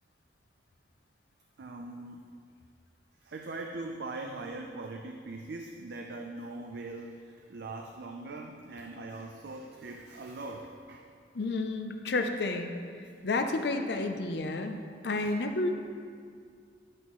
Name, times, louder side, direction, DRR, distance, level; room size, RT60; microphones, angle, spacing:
voice 1, 1.6-2.3 3.2-11.0 13.4-13.6 15.2-15.3, right 2 dB, 65° right, 3 dB, 0.4 m, -41 dB
voice 2, 11.3-12.7 13.2-15.7, left 2 dB, 65° left, 6 dB, 0.5 m, -31 dB
10.5 x 5.5 x 3.1 m, 2.2 s
head